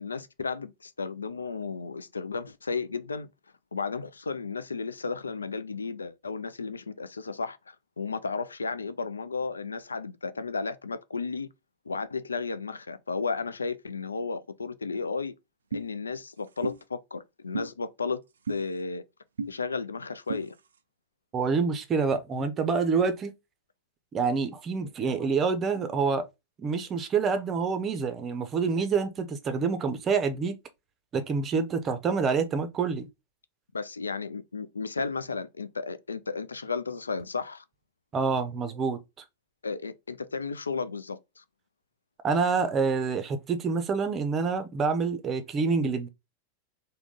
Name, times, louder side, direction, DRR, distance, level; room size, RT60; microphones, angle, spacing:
voice 1, 0.0-3.3 3.7-11.5 11.9-15.3 15.7-18.2 18.5-19.0 19.5-20.6 33.7-37.6 39.6-41.4, left 4 dB, 75° left, 0.3 m, -33 dB
sound 1, 15.7-15.9 16.6-16.8 17.5-17.7 18.5-18.6 19.4-19.5 20.3-20.4, right 4 dB, 70° right, 0.3 m, -32 dB
voice 2, 21.3-23.3 24.1-26.2 26.6-30.6 31.1-33.1 38.1-39.0 42.2-46.1, right 5 dB, 25° right, 0.6 m, -27 dB
3.6 x 2.2 x 3.6 m
figure-of-eight pair, 90°, 0 cm